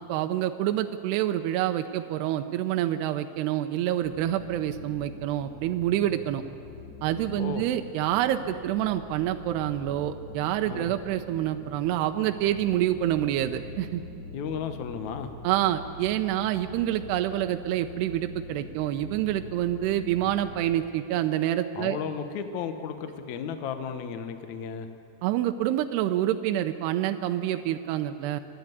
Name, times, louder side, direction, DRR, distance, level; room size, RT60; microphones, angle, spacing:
voice 1, 0.0-6.4 7.0-14.0 15.4-22.0 25.2-28.4, right 12 dB, 80° right, 7 dB, 2.7 m, -27 dB
sound 1, 4.0-20.7, left 2 dB, 35° left, 3.0 m, -44 dB
voice 2, 14.3-15.3 21.8-24.9, left 7 dB, 70° left, 7 dB, 1.8 m, -34 dB
26.5 x 11.0 x 9.5 m, 2.7 s
omnidirectional pair, 4.8 m